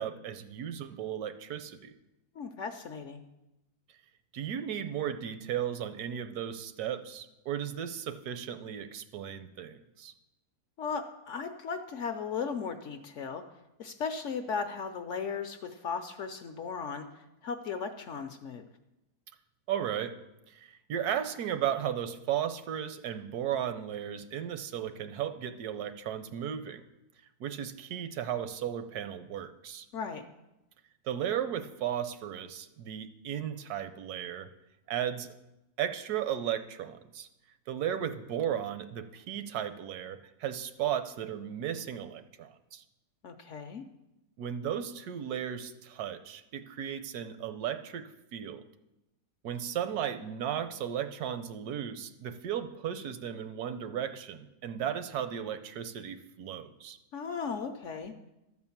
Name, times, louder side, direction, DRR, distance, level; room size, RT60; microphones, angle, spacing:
voice 1, 0.0-1.9 4.3-10.1 19.7-20.1 20.5-26.8 27.4-29.9 31.0-34.5 34.9-35.3 35.8-37.3 37.7-42.8 44.4-48.6 49.4-57.0, right 9 dB, 80° right, 10 dB, 1.2 m, -35 dB
voice 2, 2.4-3.2 10.8-13.4 13.8-18.7 29.9-30.2 43.2-43.8 57.1-58.1, left 5 dB, 65° left, 6 dB, 0.8 m, -36 dB
12.5 x 4.5 x 7.1 m, 0.94 s
omnidirectional pair, 1.7 m